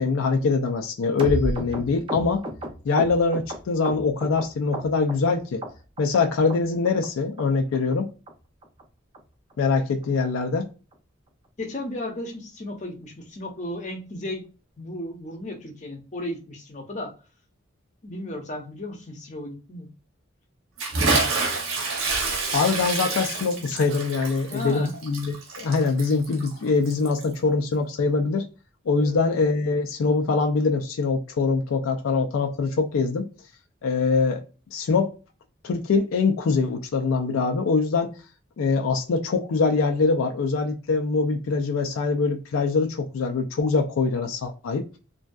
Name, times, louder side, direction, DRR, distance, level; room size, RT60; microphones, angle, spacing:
voice 1, 0.0-2.4 2.9-5.6 6.0-8.1 9.6-10.7 22.5-28.4 28.9-33.3 33.8-34.4 34.7-35.1 35.6-38.1 38.6-44.9, left 4 dB, 80° left, 0.4 m, -23 dB
sound 1, 1.2-4.4 4.7-5.3 5.6-6.2 6.5-6.6 6.8-7.1 7.4-7.5 7.7-7.9 8.3-8.4 8.6-8.8 9.1-9.2 9.5-9.7 10.0-10.1 10.4-10.6 10.9-11.0, right 1 dB, 25° right, 0.5 m, -32 dB
voice 2, 11.6-14.5 14.8-17.1 18.0-19.9 24.5-24.9 28.9-29.2, left 1 dB, 35° left, 0.6 m, -34 dB
Bathtub (filling or washing) / Splash splatter, 20.8-27.3, right 3 dB, 85° right, 0.7 m, -28 dB
2.6 x 2.1 x 2.3 m
head